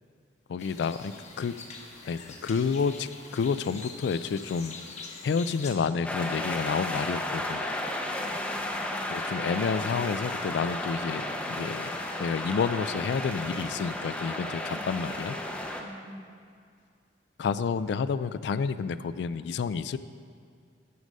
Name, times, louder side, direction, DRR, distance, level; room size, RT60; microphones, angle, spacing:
voice 1, 0.5-1.5 2.0-4.8 5.2-7.6 9.1-11.9 12.2-15.4 17.4-20.0, left 5 dB, 65° left, 14 dB, 0.3 m, -29 dB
sound 1, 0.6-5.8, left 4 dB, 40° left, 1.0 m, -44 dB
sound 2, 6.0-15.8, left 1 dB, 5° left, 0.6 m, -33 dB
voice 2, 8.0-9.1 14.7-15.2 15.8-16.3, equal, 75° right, 0 dB, 1.4 m, -45 dB
9.6 x 6.5 x 5.3 m, 2.3 s
head